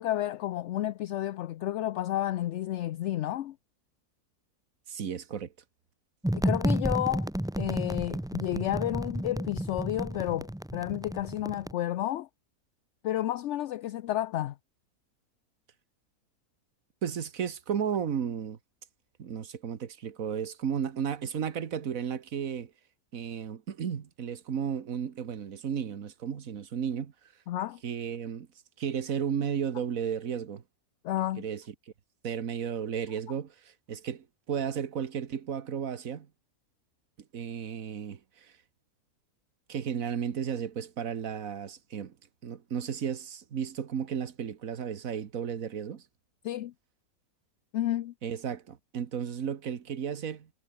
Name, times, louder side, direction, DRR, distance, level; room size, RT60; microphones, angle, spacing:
voice 1, 0.0-3.6 6.3-7.3 7.6-12.3 13.0-14.5 27.5-27.8 31.0-31.4 46.4-46.7 47.7-48.1, left 13 dB, 65° left, 0.7 m, -31 dB
voice 2, 4.9-5.5 17.0-18.6 19.2-22.7 23.1-27.1 27.8-28.5 28.8-30.6 31.4-31.6 32.2-36.3 37.3-38.5 39.7-42.1 42.4-46.0 48.2-50.5, right 7 dB, 60° right, 1.7 m, -34 dB
sound 1, 6.2-11.7, right 1 dB, 5° right, 0.6 m, -31 dB
omnidirectional pair, 1.6 m